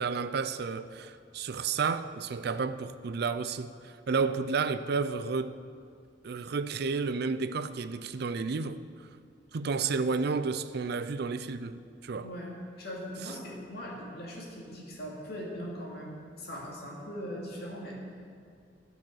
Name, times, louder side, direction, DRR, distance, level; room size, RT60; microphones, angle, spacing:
voice 1, 0.0-5.6 6.2-8.8 9.5-12.3, right 4 dB, 60° right, 0.4 m, -31 dB
voice 2, 12.2-18.0, equal, 65° left, 2.5 m, -40 dB
13.0 x 6.3 x 6.6 m
head